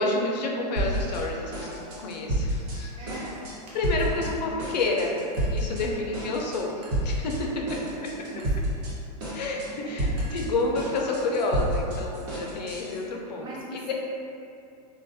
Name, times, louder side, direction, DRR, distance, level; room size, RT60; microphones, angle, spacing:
voice 1, 0.0-2.9 3.7-5.2 5.5-7.6 8.0-8.1 9.3-13.5 13.7-13.9, left 2 dB, 90° left, 0 dB, 0.5 m, -29 dB
sound 1, 0.8-1.2 1.5-2.8 3.1-3.5 3.8-4.3 4.6-5.8 6.1-6.6 6.9-7.4 7.7-8.9 9.2-9.7 10.0-13.0, right 1 dB, 65° right, 1.0 m, -30 dB
Chink clink, 2.7-3.2 3.7-4.1 4.8-5.8 6.8-7.2 8.4-8.7 10.2-11.0, right 1 dB, 85° right, 0.6 m, -51 dB
voice 2, 3.0-3.5 4.0-4.8 5.8-6.1 7.4-7.7 8.3-8.7 9.5-10.5 13.4-13.9, right 2 dB, 25° right, -5 dB, 0.5 m, -43 dB
2.3 x 2.2 x 2.5 m, 2.5 s
hypercardioid pair, 125°, 21 cm